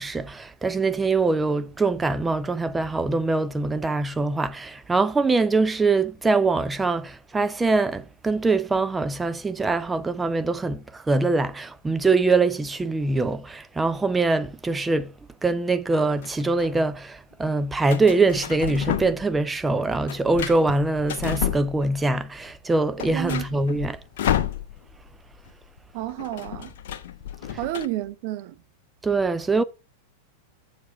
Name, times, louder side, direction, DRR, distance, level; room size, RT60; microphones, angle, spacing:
voice 1, 0.0-15.1 15.4-24.0 29.0-29.6, right 3 dB, 10° right, 0.6 m, -23 dB
sound 1, 15.9-16.7 17.9-19.4 19.7-22.1 22.5-22.6 22.8-25.1 25.3-25.5 25.8-27.9, left 11 dB, 55° left, 0.8 m, -31 dB
voice 2, 23.1-23.4 25.9-26.7 27.6-28.6, right 14 dB, 45° right, 0.8 m, -30 dB
7.5 x 4.7 x 6.9 m
figure-of-eight pair, 90°, 0 cm